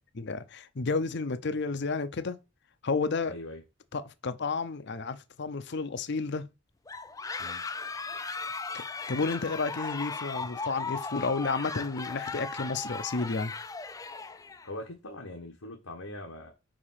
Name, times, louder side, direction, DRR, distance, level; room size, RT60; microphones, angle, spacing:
voice 1, 0.1-2.4 2.8-3.4 3.9-6.4 9.1-13.5, left 4 dB, 55° left, 0.6 m, -31 dB
voice 2, 3.2-3.6 7.4-7.6 14.6-16.5, left 1 dB, 90° left, 1.3 m, -42 dB
sound 1, 6.9-14.7, left 4 dB, 15° left, 0.4 m, -37 dB
5.3 x 5.0 x 5.6 m
head